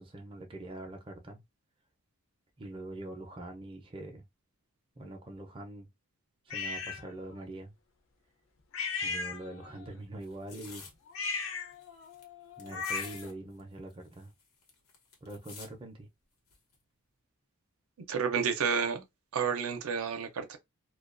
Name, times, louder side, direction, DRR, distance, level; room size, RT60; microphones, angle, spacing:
voice 1, 0.0-1.4 2.6-4.2 5.0-5.9 6.5-7.7 9.0-10.9 12.6-14.3 15.2-16.1, right 1 dB, 25° right, 0.4 m, -44 dB
sound 1, 6.5-7.0 8.7-9.8 11.1-13.3, left 4 dB, 65° left, 0.5 m, -36 dB
sound 2, 10.2-10.9 11.4-11.5 11.7-12.2 12.6-13.3 13.6-13.7 13.9-15.7 16.5-16.7, left 5 dB, 85° left, 0.9 m, -49 dB
voice 2, 18.1-19.0 19.3-20.6, right 6 dB, 85° right, 0.5 m, -30 dB
2.3 x 2.2 x 2.4 m
head